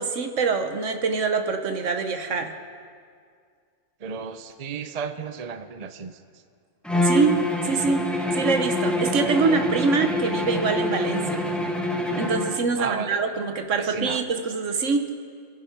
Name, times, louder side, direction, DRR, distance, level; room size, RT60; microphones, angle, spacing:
voice 1, 0.0-2.5 7.0-8.0 8.3-11.4 12.2-15.1, right 4 dB, 65° right, 6 dB, 1.3 m, -24 dB
voice 2, 4.0-6.4 9.4-9.6 12.8-13.5 13.8-14.2, right 6 dB, 45° right, 9 dB, 0.5 m, -34 dB
Bowed string instrument, 6.8-12.7, left 1 dB, ahead, 0.8 m, -26 dB
25.5 x 10.5 x 4.6 m, 2.1 s
omnidirectional pair, 1.5 m